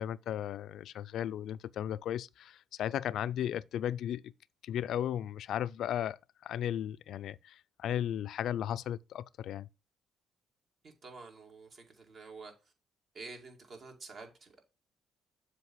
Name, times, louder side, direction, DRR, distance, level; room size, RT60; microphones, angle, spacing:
voice 1, 0.0-4.3 4.6-9.7, left 10 dB, 70° left, 0.3 m, -35 dB
voice 2, 10.8-12.5 13.1-14.6, right 3 dB, 55° right, 2.2 m, -49 dB
7.4 x 3.3 x 6.1 m
cardioid pair, 80°, 0 cm